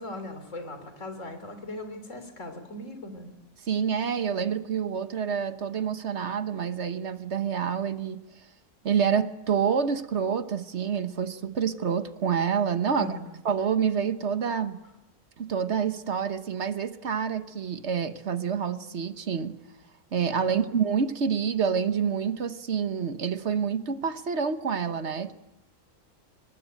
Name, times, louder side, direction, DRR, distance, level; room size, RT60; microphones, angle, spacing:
voice 1, 0.0-3.3 12.9-13.4 20.5-20.6, left 1 dB, 70° left, 8 dB, 3.6 m, -39 dB
voice 2, 3.6-8.2 8.8-13.2 13.4-14.8 15.4-19.6 20.1-25.3, right 7 dB, 60° right, 11 dB, 1.4 m, -27 dB
23.0 x 20.0 x 9.1 m, 0.97 s
omnidirectional pair, 1.4 m